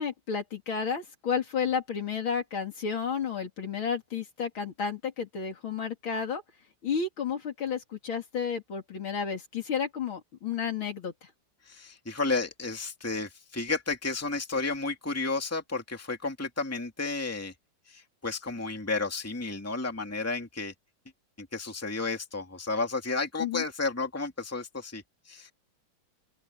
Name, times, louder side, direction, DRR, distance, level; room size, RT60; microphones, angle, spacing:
voice 1, 0.0-6.4 6.8-11.1 23.4-23.6, left 6 dB, 75° left, 3.6 m, -32 dB
voice 2, 11.7-17.5 17.9-20.7 21.4-25.5, left 3 dB, 5° left, 2.5 m, -32 dB
open air
omnidirectional pair, 2.2 m